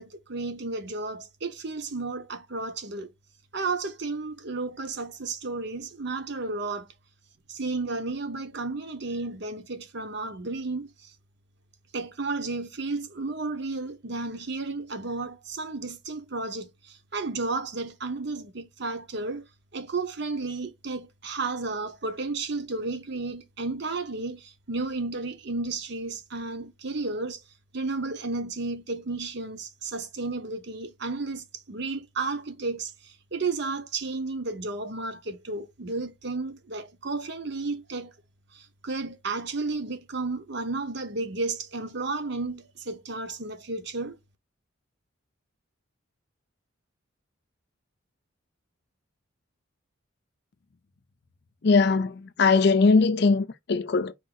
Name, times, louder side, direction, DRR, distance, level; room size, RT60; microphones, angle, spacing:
voice 1, 0.0-3.1 3.5-6.9 7.5-11.1 11.9-19.5 19.7-27.4 27.7-38.1 38.5-44.1, right 3 dB, 55° right, 0.9 m, -33 dB
voice 2, 51.6-54.1, left 4 dB, 50° left, 0.5 m, -21 dB
4.6 x 2.6 x 3.9 m
head